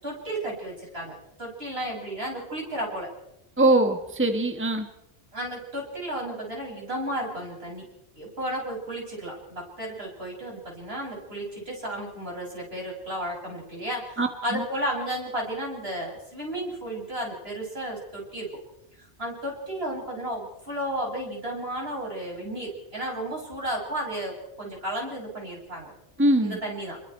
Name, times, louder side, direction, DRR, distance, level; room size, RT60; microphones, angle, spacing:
voice 1, 0.0-3.1 5.3-7.9 8.2-18.5 19.0-25.9 26.4-27.0, right 1 dB, 60° right, -2 dB, 7.3 m, -33 dB
voice 2, 3.6-4.9 14.2-14.6 26.2-26.6, right 1 dB, 10° right, 6 dB, 1.4 m, -22 dB
28.0 x 22.0 x 4.5 m, 0.88 s
omnidirectional pair, 1.2 m